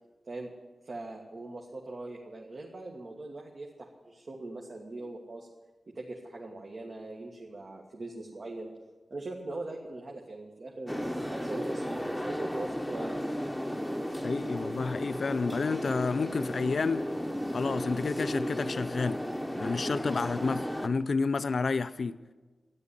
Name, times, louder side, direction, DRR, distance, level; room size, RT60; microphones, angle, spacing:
voice 1, 0.8-5.5 6.0-8.7 9.1-13.4, right 2 dB, 55° right, 1.8 m, -41 dB
sound 1, 10.9-20.9, equal, ahead, 1.0 m, -34 dB
voice 2, 14.2-17.0 17.5-19.2 19.6-22.2, left 4 dB, 65° left, 0.5 m, -30 dB
13.0 x 10.0 x 9.8 m
wide cardioid pair, 110°, 0 cm